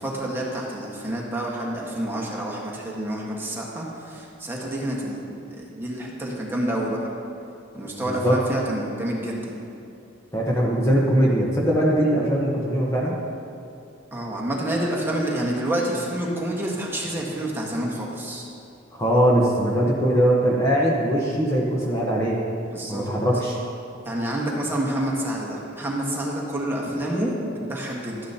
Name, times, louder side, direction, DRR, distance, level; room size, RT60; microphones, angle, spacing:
voice 1, 0.0-7.0 7.7-9.4 14.1-18.4 22.7-23.1 24.0-28.2, right 1 dB, 10° right, -3 dB, 1.4 m, -28 dB
voice 2, 8.0-8.4 10.3-13.1 18.9-22.4 22.9-23.6, equal, 15° left, -4 dB, 1.0 m, -21 dB
13.0 x 10.5 x 2.8 m, 2.7 s
head